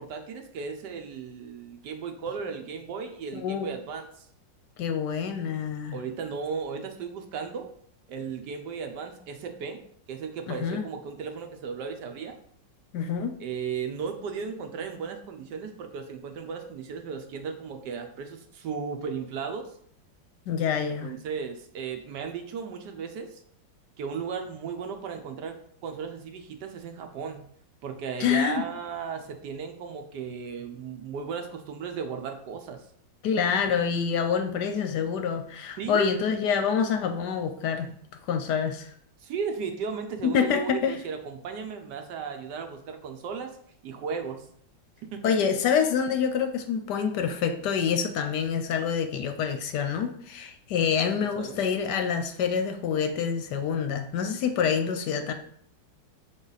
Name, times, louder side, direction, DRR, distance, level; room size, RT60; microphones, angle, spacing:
voice 1, 0.0-4.3 5.9-7.7 8.1-9.8 10.1-12.4 13.4-19.7 21.0-23.4 24.0-27.5 27.8-32.8 35.8-36.1 39.2-43.6 43.8-44.4 45.1-45.2 51.2-51.7, right 6 dB, 70° right, 5 dB, 1.2 m, -35 dB
voice 2, 3.3-3.7 4.8-6.0 10.5-10.8 12.9-13.4 20.5-21.1 28.2-28.6 33.2-37.9 38.3-38.9 40.2-41.0 45.2-55.3, left 7 dB, 70° left, 6 dB, 1.1 m, -27 dB
6.4 x 3.9 x 4.0 m, 0.63 s
omnidirectional pair, 2.0 m